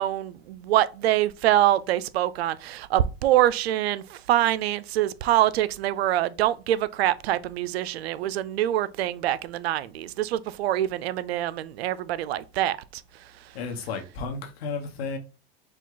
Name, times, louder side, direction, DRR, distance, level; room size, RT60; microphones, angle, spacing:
voice 1, 0.0-12.8, right 13 dB, 90° right, 0.5 m, -25 dB
voice 2, 13.5-15.2, left 4 dB, 85° left, 1.2 m, -33 dB
4.9 x 2.3 x 3.8 m
supercardioid pair, 115°, 30 cm